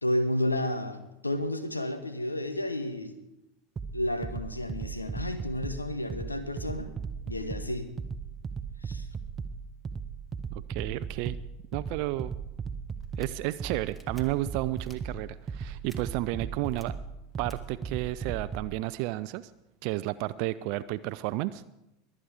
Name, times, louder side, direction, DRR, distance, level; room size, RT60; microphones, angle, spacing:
voice 1, 0.0-3.2 3.9-6.9 7.3-7.9 8.8-9.1, left 1 dB, 85° left, 10 dB, 1.1 m, -31 dB
sound 1, 3.8-18.8, right 6 dB, 25° right, 0.8 m, -37 dB
voice 2, 10.5-11.4 11.7-12.3 13.2-17.0 17.4-19.5 19.8-21.6, right 17 dB, 50° right, 15 dB, 0.4 m, -32 dB
sound 2, 13.0-13.3 13.9-14.2 14.8-15.0 15.9-16.0 16.6-16.8 17.5-17.6, equal, 10° left, 1.6 m, -54 dB
22.5 x 8.6 x 5.0 m, 0.90 s
figure-of-eight pair, 80°, 0 cm